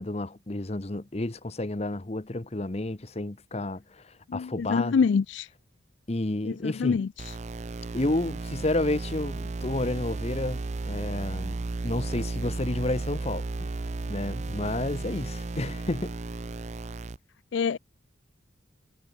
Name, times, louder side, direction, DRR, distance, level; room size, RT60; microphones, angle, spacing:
voice 1, 0.0-5.0 6.1-7.0 7.9-11.6 11.8-13.7 14.1-16.1, left 2 dB, 35° left, 0.9 m, -31 dB
voice 2, 4.3-5.5 6.5-7.1 17.5-17.8, left 5 dB, 70° left, 0.4 m, -25 dB
sound 1, 7.2-17.2, right 3 dB, 35° right, 0.5 m, -34 dB
head